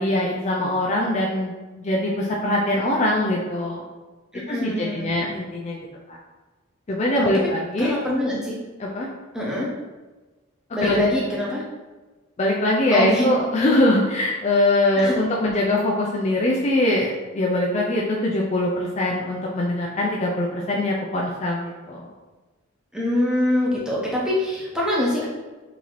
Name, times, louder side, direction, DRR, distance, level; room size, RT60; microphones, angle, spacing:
voice 1, 0.0-3.8 4.5-5.8 6.1-6.2 6.9-7.9 8.8-9.1 10.8-11.0 12.4-22.0, left 1 dB, 30° left, -3 dB, 0.4 m, -22 dB
voice 2, 4.3-5.2 7.2-7.3 7.8-8.5 9.3-9.7 10.7-11.6 12.9-13.2 15.0-15.1 22.9-25.3, left 1 dB, 5° right, -6 dB, 0.7 m, -24 dB
3.9 x 2.7 x 3.0 m, 1.2 s
head